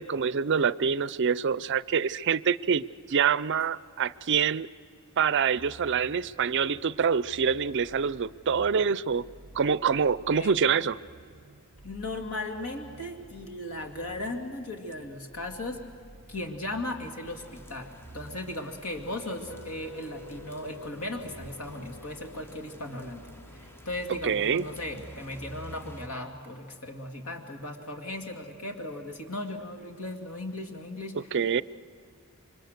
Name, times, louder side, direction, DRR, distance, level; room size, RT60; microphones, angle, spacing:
voice 1, 0.0-4.7 5.2-9.2 9.5-11.0 24.2-24.6 31.3-31.6, right 6 dB, 55° right, 18 dB, 0.5 m, -26 dB
sound 1, 5.6-22.1, right 2 dB, 40° right, 1.3 m, -53 dB
voice 2, 11.8-15.8 16.3-31.4, left 1 dB, 75° left, 4 dB, 2.3 m, -37 dB
sound 2, 17.2-26.1, equal, 10° left, 0.8 m, -50 dB
sound 3, 19.5-25.6, left 3 dB, 55° left, 1.2 m, -51 dB
27.0 x 24.5 x 6.5 m, 2.4 s
head